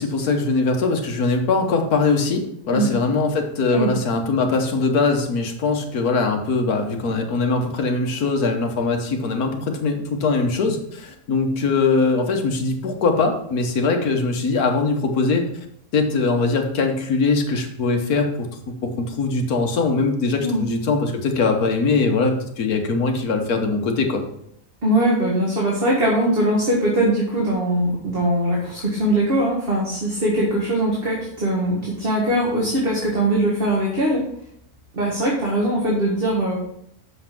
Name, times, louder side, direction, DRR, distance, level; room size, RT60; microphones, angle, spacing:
voice 1, 0.0-15.5 15.9-18.5 18.8-24.2, left 3 dB, 80° left, 4 dB, 1.6 m, -21 dB
voice 2, 24.8-34.3 34.9-36.6, right 1 dB, 40° right, -3 dB, 1.9 m, -21 dB
7.0 x 5.6 x 5.9 m, 0.72 s
omnidirectional pair, 1.6 m